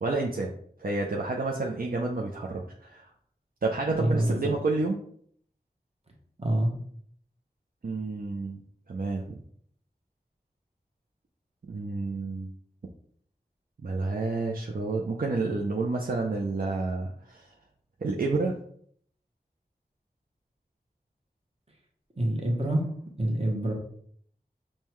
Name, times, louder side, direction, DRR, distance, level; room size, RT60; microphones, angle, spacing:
voice 1, 0.0-3.1 3.6-5.0 7.8-8.6 8.9-9.4 11.7-12.5 13.8-17.5 18.0-18.6, right 3 dB, 65° right, -1 dB, 0.5 m, -30 dB
voice 2, 3.9-4.5 6.4-6.7 22.2-22.9 23.2-23.7, right 1 dB, 40° right, 0 dB, 1.0 m, -26 dB
5.3 x 2.2 x 3.0 m, 0.62 s
wide cardioid pair, 45°, 16 cm